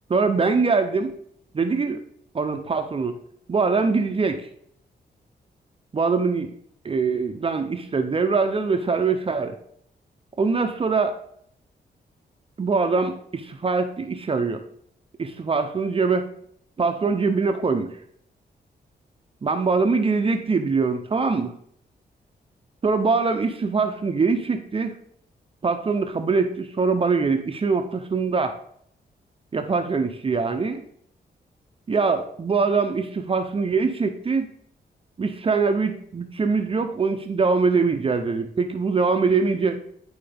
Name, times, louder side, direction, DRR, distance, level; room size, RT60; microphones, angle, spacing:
voice 1, 0.1-1.1 1.5-2.0 2.3-3.2 3.5-4.5 5.9-6.5 6.8-9.6 10.4-11.2 12.6-14.6 15.2-16.3 16.8-17.9 19.4-21.6 22.8-25.0 25.6-28.6 29.5-30.8 31.9-34.5 35.2-39.8, right 4 dB, 35° right, 7 dB, 0.6 m, -23 dB
10.0 x 4.7 x 3.5 m, 0.66 s
wide cardioid pair, 130°, 17 cm